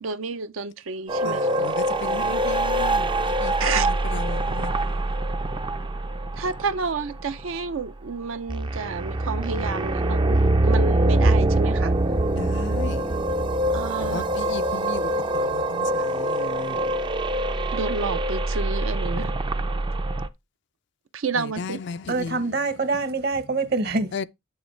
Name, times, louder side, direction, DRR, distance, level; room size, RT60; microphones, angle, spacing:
voice 1, 0.0-1.7 3.6-3.9 6.3-11.9 13.7-14.2 17.7-19.3 21.1-21.8, right 4 dB, 75° right, 0.6 m, -30 dB
sound 1, 1.1-20.3, right 1 dB, 25° right, 0.4 m, -24 dB
voice 2, 1.2-5.1 12.3-13.6 14.0-17.2 21.3-22.4 24.1-24.3, left 6 dB, 60° left, 0.4 m, -36 dB
voice 3, 22.1-24.1, right 3 dB, 50° right, 1.0 m, -25 dB
8.0 x 6.6 x 3.2 m
head